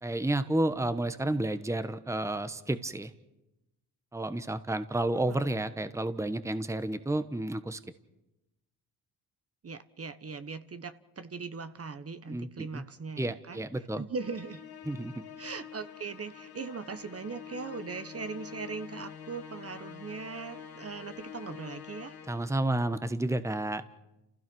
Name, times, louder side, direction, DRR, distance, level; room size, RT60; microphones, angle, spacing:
voice 1, 0.0-3.1 4.1-7.8 12.3-12.8 13.2-14.0 14.9-15.1 22.3-23.8, right 1 dB, 5° right, 11 dB, 1.2 m, -31 dB
voice 2, 9.6-13.6 14.0-14.6 15.4-22.1, right 4 dB, 35° right, 11 dB, 1.3 m, -40 dB
Musical instrument, 14.2-22.7, left 8 dB, 65° left, 1.8 m, -46 dB
30.0 x 16.0 x 6.3 m, 0.96 s
supercardioid pair, 60°, 39 cm